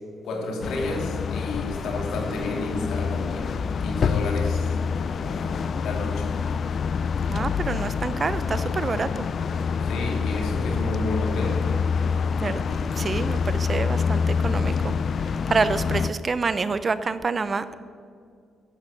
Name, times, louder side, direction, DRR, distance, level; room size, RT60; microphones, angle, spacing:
voice 1, 0.2-4.8 5.1-6.3 9.8-11.6, left 2 dB, 80° left, 0 dB, 3.1 m, -31 dB
sound 1, 0.6-16.1, left 6 dB, 50° left, 0.5 m, -26 dB
voice 2, 7.3-9.3 12.4-12.6 13.0-14.9 15.5-17.8, right 4 dB, 35° right, 13 dB, 0.6 m, -27 dB
12.0 x 8.9 x 6.8 m, 2.2 s
cardioid pair, 90°, 0 cm